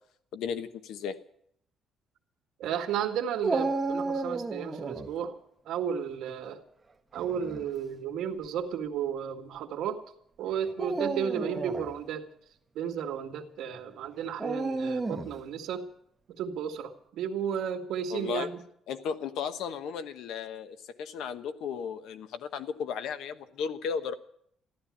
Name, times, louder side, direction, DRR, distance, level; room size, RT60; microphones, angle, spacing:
voice 1, 0.3-1.2 18.1-18.5 18.9-24.1, left 7 dB, 80° left, 10 dB, 1.1 m, -35 dB
voice 2, 2.6-5.4 5.7-6.6 7.1-10.0 10.4-12.3 12.8-15.9 16.4-18.6, right 8 dB, 75° right, 3 dB, 2.0 m, -33 dB
Dog, 3.4-5.1 7.2-7.6 8.4-8.5 10.7-11.9 14.4-15.4, right 3 dB, 15° right, 1.2 m, -32 dB
14.5 x 12.0 x 8.5 m, 0.69 s
cardioid pair, 170°, 0 cm